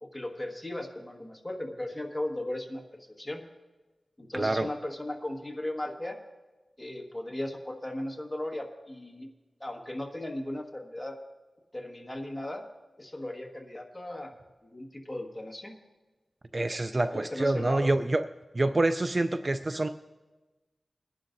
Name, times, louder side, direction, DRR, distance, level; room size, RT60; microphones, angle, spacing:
voice 1, 0.0-3.4 4.2-6.2 6.8-9.3 9.6-11.2 11.7-12.6 13.0-15.8 17.1-17.9, left 1 dB, 15° left, 1 dB, 1.5 m, -37 dB
voice 2, 4.3-4.7 16.5-18.2 18.5-19.9, right 2 dB, 35° right, 10 dB, 0.3 m, -26 dB
22.5 x 11.0 x 2.6 m, 1.2 s
wide cardioid pair, 100°, 0 cm